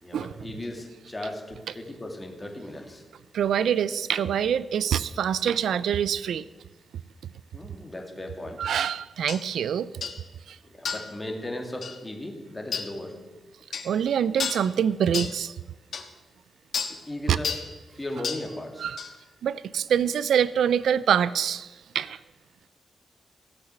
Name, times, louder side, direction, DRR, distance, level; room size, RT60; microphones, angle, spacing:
voice 1, 0.0-3.0 7.5-8.7 10.7-13.1 16.9-17.5 17.9-18.9, left 1 dB, 15° left, 2 dB, 2.5 m, -37 dB
voice 2, 3.3-6.4 8.6-9.9 10.5-10.6 13.8-15.5 17.3-17.4 18.8-19.0 19.4-22.2, right 8 dB, 85° right, 17 dB, 0.4 m, -25 dB
sound 1, 9.3-9.4 10.0-10.2 10.9-11.1 11.8-12.0 12.7-12.9 13.7-13.9 14.4-14.7 15.1-15.4 15.9-16.0 16.7-17.0 17.4-17.7 18.2-18.5 19.0-19.1, left 6 dB, 60° left, 1.4 m, -31 dB
16.0 x 8.1 x 7.7 m, 1.2 s
cardioid pair, 115°, 0 cm